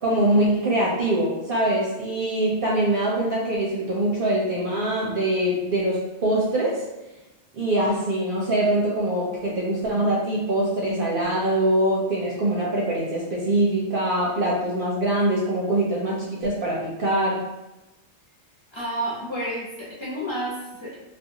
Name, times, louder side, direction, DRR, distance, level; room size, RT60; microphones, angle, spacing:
voice 1, 0.0-6.8 7.5-17.5, right 1 dB, 60° right, -4 dB, 0.7 m, -23 dB
voice 2, 18.7-20.9, right 1 dB, 25° left, -9 dB, 0.8 m, -30 dB
2.4 x 2.3 x 2.7 m, 1.0 s
omnidirectional pair, 1.2 m